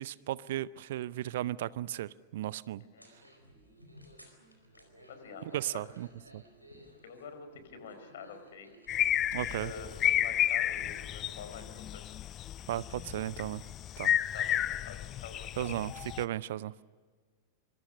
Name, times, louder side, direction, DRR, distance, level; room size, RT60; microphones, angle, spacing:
voice 1, 0.0-2.8 5.4-6.1 6.3-6.4 9.3-9.7 12.7-13.6 14.0-14.1 15.6-16.7, right 13 dB, 55° right, 0.6 m, -35 dB
sound 1, 3.0-11.9, equal, 90° right, 4.5 m, -57 dB
voice 2, 5.1-5.8 7.0-8.7 9.4-11.7 11.9-12.0 14.3-15.8, left 6 dB, 60° left, 4.7 m, -47 dB
sound 2, 8.9-16.2, left 12 dB, 30° left, 0.6 m, -32 dB
25.5 x 25.5 x 6.5 m
figure-of-eight pair, 90°, 0 cm